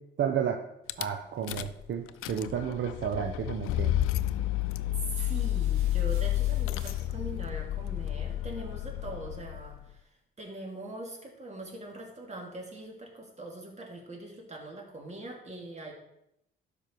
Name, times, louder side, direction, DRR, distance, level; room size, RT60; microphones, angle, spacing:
voice 1, 0.2-0.6 1.0-3.9, right 8 dB, 65° right, 4 dB, 0.9 m, -31 dB
Rattle / Car / Engine starting, 0.9-1.1 1.5-1.8 2.1-9.8, left 13 dB, 85° left, 0.5 m, -31 dB
voice 2, 4.9-10.1 10.4-15.9, right 2 dB, 35° right, 1 dB, 2.8 m, -42 dB
sound 1, 5.2-7.5, right 4 dB, 80° right, 1.8 m, -55 dB
12.5 x 5.3 x 4.6 m, 0.83 s
cardioid pair, 75°, 21 cm